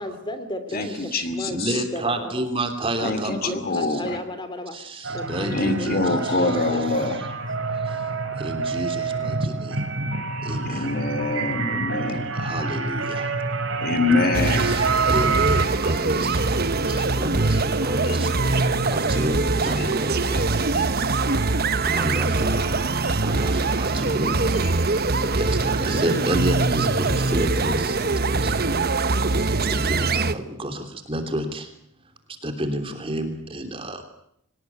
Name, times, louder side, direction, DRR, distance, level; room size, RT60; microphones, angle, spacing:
voice 1, 0.0-0.9 1.3-2.4 3.0-4.8 5.1-6.8, left 1 dB, 20° left, 10 dB, 3.0 m, -34 dB
voice 2, 0.7-1.8 3.0-4.2 5.5-7.4 10.5-12.3 13.8-14.8, left 3 dB, 45° left, 10 dB, 2.6 m, -25 dB
voice 3, 1.5-4.0 4.7-6.0 7.8-8.0 8.4-9.9 10.4-10.9 12.4-13.3 14.5-21.2 21.8-22.9 23.2-24.5 24.8-28.7 29.7-31.7 32.4-34.0, right 1 dB, 25° right, 7 dB, 3.2 m, -30 dB
sound 1, 5.0-15.7, right 4 dB, 60° right, 3.1 m, -27 dB
sound 2, 14.3-30.3, right 3 dB, 45° right, 1.1 m, -23 dB
sound 3, 15.1-30.4, left 2 dB, 60° left, 7.1 m, -46 dB
25.0 x 19.0 x 9.6 m, 0.73 s
head